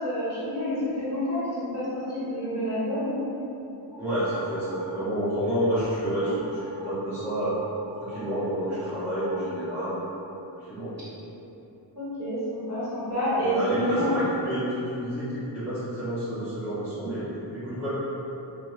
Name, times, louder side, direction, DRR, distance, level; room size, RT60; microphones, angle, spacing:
voice 1, 0.0-3.2 11.9-14.3, left 1 dB, 35° right, -13 dB, 1.4 m, -28 dB
sound 1, 3.9-4.9 5.2-5.9 6.2-6.9 7.2-10.0, right 2 dB, 45° left, 0.5 m, -46 dB
voice 2, 4.0-7.6 8.0-10.0 10.7-10.9 13.4-15.3 15.5-17.3 17.5-17.9, equal, 5° right, -15 dB, 0.8 m, -29 dB
2.6 x 2.3 x 3.1 m, 2.9 s
wide cardioid pair, 100°, 44 cm